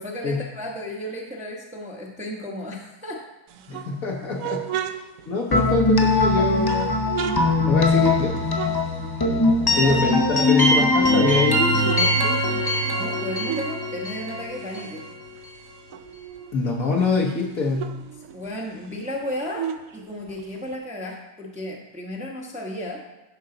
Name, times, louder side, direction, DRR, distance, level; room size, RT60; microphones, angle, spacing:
voice 1, 0.0-3.2 3.7-3.8 9.6-9.9 10.3-10.8 12.8-15.0 18.3-19.7 19.9-23.0, left 1 dB, 5° right, -1 dB, 0.8 m, -34 dB
sound 1, 3.5-6.2 6.6-9.5 9.8-11.1 11.5-13.8 14.1-16.6 17.0-17.1 17.3-20.8, right 9 dB, 70° right, 0.9 m, -35 dB
voice 2, 3.7-5.0 5.2-7.0 7.7-8.5 9.8-12.4 16.5-17.9, left 3 dB, 60° left, 0 dB, 1.3 m, -24 dB
sound 2, 5.5-15.3, left 2 dB, 25° left, 0.5 m, -21 dB
10.0 x 5.5 x 3.8 m, 1.0 s
omnidirectional pair, 1.7 m